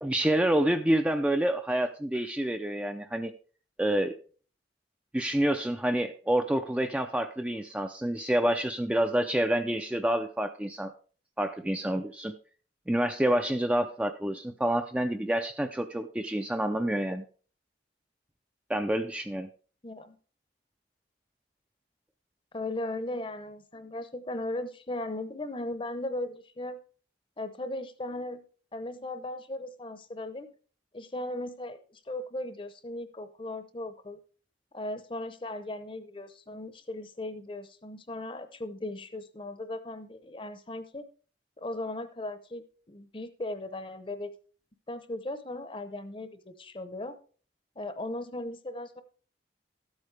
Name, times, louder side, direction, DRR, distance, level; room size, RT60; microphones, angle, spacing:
voice 1, 0.0-3.3 3.8-4.2 5.1-10.9 11.4-12.3 12.9-17.2 18.7-19.5, right 1 dB, 5° right, 6 dB, 0.4 m, -28 dB
voice 2, 19.8-20.2 22.5-26.8 27.4-28.4 28.7-30.5 30.9-34.2 34.7-41.0 41.6-44.3 44.9-47.2 47.8-49.0, left 1 dB, 30° left, 11 dB, 0.8 m, -37 dB
13.0 x 8.1 x 3.3 m, 0.40 s
head